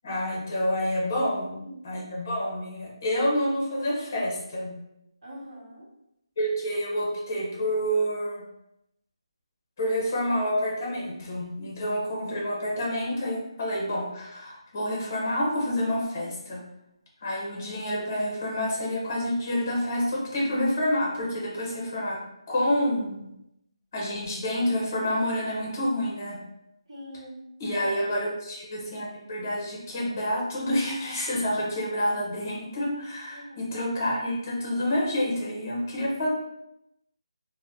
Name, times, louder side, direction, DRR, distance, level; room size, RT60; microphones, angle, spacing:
voice 1, 0.0-1.5 1.8-4.7 6.4-8.4 9.8-16.6 17.2-22.2 22.5-23.3 23.9-26.4 27.6-36.3, equal, 25° left, -4 dB, 0.8 m, -28 dB
voice 2, 1.2-1.8 5.2-5.9 26.9-27.4 27.7-28.1 33.3-33.6, equal, 45° right, -4 dB, 1.2 m, -44 dB
2.7 x 2.1 x 3.5 m, 0.82 s
hypercardioid pair, 175°, 3 cm